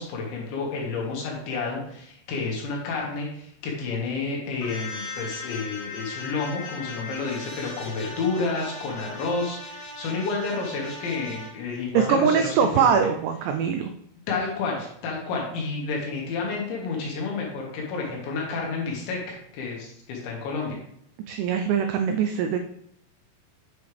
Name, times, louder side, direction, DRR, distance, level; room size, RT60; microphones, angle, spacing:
voice 1, 0.0-13.0 14.3-20.8, left 4 dB, 70° left, -2 dB, 3.9 m, -30 dB
sound 1, 4.6-11.5, left 2 dB, 50° left, 3.7 m, -38 dB
voice 2, 11.9-13.9 21.3-22.6, right 7 dB, 90° right, 6 dB, 2.5 m, -22 dB
9.6 x 6.9 x 3.4 m, 0.73 s
omnidirectional pair, 5.8 m